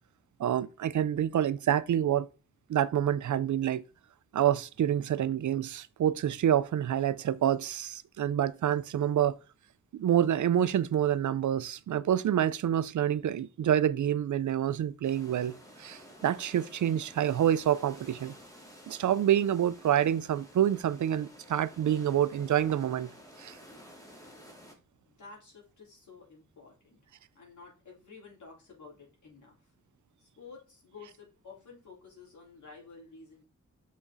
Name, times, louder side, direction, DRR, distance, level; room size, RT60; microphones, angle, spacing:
voice 1, 0.4-2.3 2.7-3.8 4.3-9.4 9.9-18.3 18.9-23.1 23.4-23.6, right 10 dB, 85° right, 0.6 m, -27 dB
sound 1, 15.0-24.7, equal, 10° left, 2.1 m, -52 dB
voice 2, 24.9-27.0 27.3-29.7 30.2-33.5, left 4 dB, 85° left, 4.2 m, -52 dB
6.2 x 6.0 x 4.0 m
wide cardioid pair, 110°, 29 cm